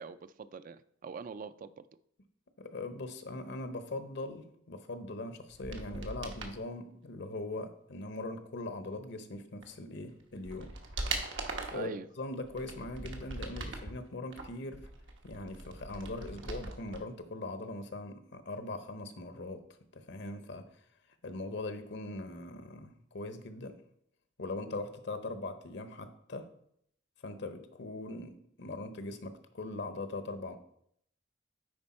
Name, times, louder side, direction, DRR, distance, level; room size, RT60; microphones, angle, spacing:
voice 1, 0.0-1.7 11.7-12.1, right 5 dB, 45° right, 13 dB, 0.3 m, -43 dB
voice 2, 2.6-10.7 11.7-11.9 12.2-14.9 15.2-19.6 19.9-20.6 21.2-23.8 24.4-26.4 27.2-30.6, left 2 dB, 65° left, 9 dB, 0.8 m, -41 dB
sound 1, 5.5-6.6 9.6-9.7 10.2-11.9 12.4-13.9 14.3-17.0 17.3-17.4, right 3 dB, 85° right, 1.1 m, -40 dB
9.7 x 4.4 x 4.2 m, 0.70 s
head